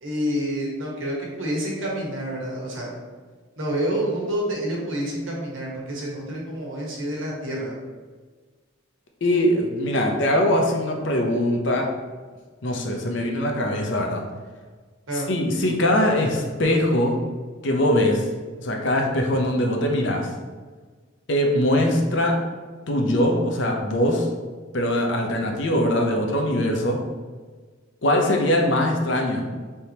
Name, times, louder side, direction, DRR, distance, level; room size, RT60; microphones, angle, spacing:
voice 1, 0.0-3.0 3.6-7.7 15.1-15.3, equal, 70° right, -3 dB, 1.2 m, -28 dB
voice 2, 9.2-11.9 12.6-14.2 15.1-17.2 17.6-18.3 18.6-20.3 21.3-22.4 22.9-24.3 24.7-27.0 28.0-29.5, left 1 dB, 65° left, 2 dB, 0.6 m, -22 dB
4.4 x 3.5 x 2.8 m, 1.4 s
head